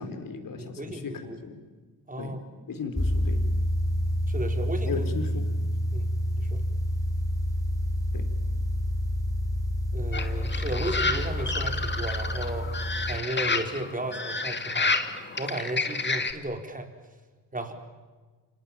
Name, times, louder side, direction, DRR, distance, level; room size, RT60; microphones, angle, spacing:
voice 1, 0.0-1.6 2.2-2.4 2.7-3.5 4.9-5.5 8.1-8.3, left 5 dB, 55° left, 7 dB, 4.7 m, -36 dB
voice 2, 0.6-1.4 2.1-2.4 4.3-5.0 5.9-6.1 6.4-6.6 9.9-12.7 13.1-15.0 15.4-16.9 17.5-17.7, right 1 dB, 20° right, 5 dB, 4.8 m, -34 dB
sound 1, 3.0-13.2, left 1 dB, 10° left, 2.6 m, -28 dB
sound 2, 10.1-16.3, left 3 dB, 25° left, 2.7 m, -30 dB
29.5 x 26.0 x 7.6 m, 1.4 s
cardioid pair, 70°, 40 cm